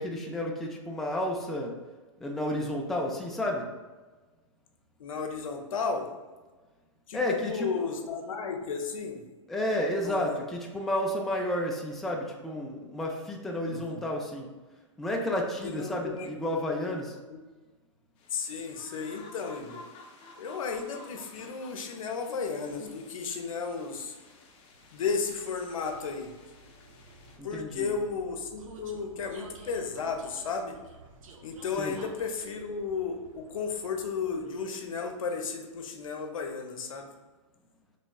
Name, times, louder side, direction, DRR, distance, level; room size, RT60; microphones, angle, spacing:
voice 1, 0.0-1.8 2.2-3.7 7.1-7.9 9.5-14.5 15.0-17.2 27.4-27.9 31.8-32.0, left 1 dB, ahead, -1 dB, 0.3 m, -31 dB
voice 2, 5.0-6.1 7.1-9.2 10.0-10.4 13.7-14.1 15.6-16.5 17.3-17.4 18.3-19.8 20.4-24.1 24.9-26.3 27.4-30.8 31.4-37.1, left 5 dB, 85° left, 4 dB, 0.6 m, -34 dB
sound 1, 18.2-27.4, left 3 dB, 30° left, 0.6 m, -53 dB
Vehicle, 23.1-34.8, right 3 dB, 85° right, 0.6 m, -53 dB
4.1 x 3.1 x 2.3 m, 1.3 s
hypercardioid pair, 130°, 17 cm